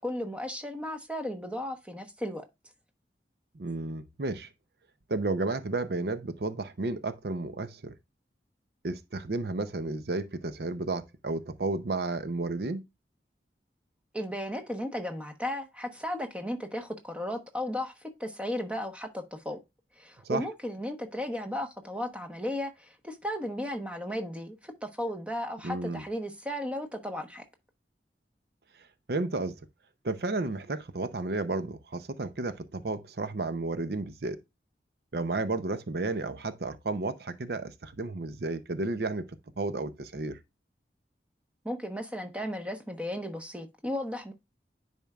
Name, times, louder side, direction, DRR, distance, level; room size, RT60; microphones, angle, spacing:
voice 1, 0.0-2.5 14.1-19.6 20.0-27.4 41.6-44.3, left 1 dB, 5° right, 1.0 m, -35 dB
voice 2, 3.5-4.5 5.1-7.9 8.8-12.8 20.2-20.4 25.6-26.0 29.1-29.6 30.0-34.4 35.1-39.3 39.6-40.4, right 2 dB, 65° right, 0.7 m, -32 dB
10.5 x 4.4 x 2.3 m
head